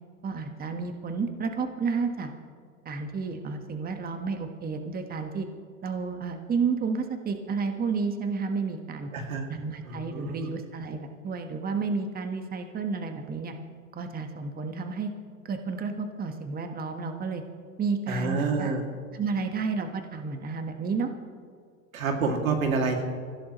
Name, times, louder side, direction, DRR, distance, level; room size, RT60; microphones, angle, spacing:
voice 1, 0.2-2.3 2.8-5.5 5.8-9.1 9.5-13.5 13.9-15.1 15.4-17.4 17.8-18.7 19.1-21.1, right 5 dB, 20° right, 6 dB, 1.5 m, -31 dB
voice 2, 9.1-9.5 9.8-10.5 18.1-18.8 21.9-23.0, right 4 dB, 85° right, 3 dB, 2.6 m, -28 dB
25.5 x 16.0 x 3.1 m, 2.1 s
hypercardioid pair, 100°, 40 cm